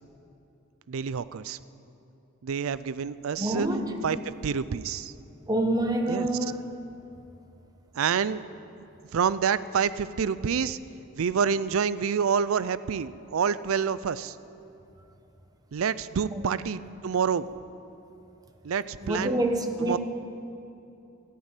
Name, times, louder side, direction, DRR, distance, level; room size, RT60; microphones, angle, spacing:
voice 1, 0.9-1.6 2.4-3.7 4.0-4.2 4.4-5.1 6.1-6.3 7.9-8.4 9.1-10.8 11.2-14.4 15.7-17.5 18.6-19.4 19.8-20.0, right 6 dB, 75° right, 16 dB, 0.4 m, -27 dB
voice 2, 3.4-3.9 5.5-6.7 16.3-16.5 19.0-20.0, right 1 dB, 20° right, 5 dB, 1.0 m, -27 dB
13.0 x 11.0 x 9.0 m, 2.8 s
head